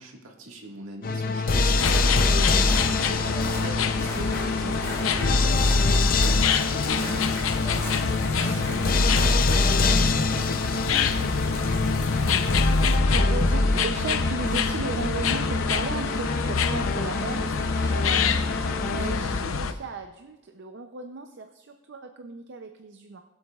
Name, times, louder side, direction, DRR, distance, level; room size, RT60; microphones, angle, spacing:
voice 1, 0.0-7.3 7.6-12.4 18.8-19.4, right 1 dB, 75° right, 1 dB, 1.8 m, -41 dB
sound 1, 1.0-19.5, left 3 dB, 45° left, 0.6 m, -25 dB
sound 2, 1.6-19.1, equal, 15° left, 3.3 m, -39 dB
sound 3, 1.7-19.7, left 5 dB, 85° left, 0.7 m, -27 dB
voice 2, 13.0-18.2 18.8-23.2, right 3 dB, 60° right, 6 dB, 0.5 m, -36 dB
21.0 x 8.0 x 2.4 m, 1.0 s
head